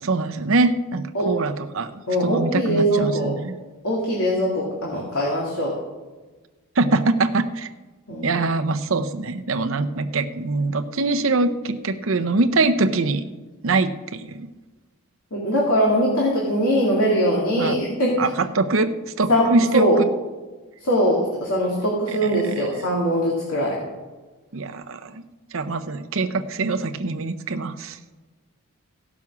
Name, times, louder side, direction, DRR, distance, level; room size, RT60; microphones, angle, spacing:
voice 1, 0.0-1.9 2.2-3.5 6.8-7.7 8.2-13.2 13.6-14.5 17.6-17.8 18.2-19.9 22.1-22.2 22.6-22.7 24.5-25.2 25.5-28.0, right 3 dB, 65° right, 8 dB, 0.7 m, -23 dB
voice 2, 2.1-3.3 3.8-5.7 8.1-8.4 15.3-18.3 19.3-20.0 20.8-23.8, equal, 75° left, -4 dB, 2.4 m, -21 dB
16.0 x 6.1 x 6.0 m, 1.3 s
head